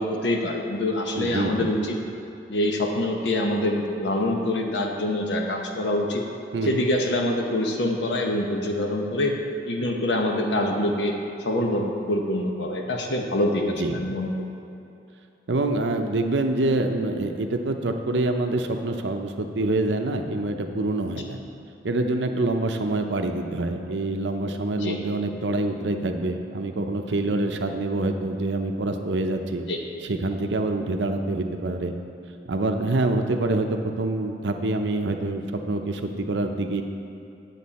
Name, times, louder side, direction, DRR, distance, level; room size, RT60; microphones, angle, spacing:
voice 1, 0.0-2.0 2.5-6.2 6.6-9.3 9.7-11.1 11.4-13.6 13.9-14.3 24.7-25.0 29.7-29.8, left 1 dB, 80° left, 1 dB, 0.9 m, -25 dB
voice 2, 1.2-1.7 6.5-6.8 13.7-14.0 15.5-21.4 21.8-29.6 30.0-31.9 32.5-36.8, right 2 dB, 85° right, 5 dB, 0.7 m, -26 dB
9.4 x 7.2 x 4.2 m, 2.8 s
head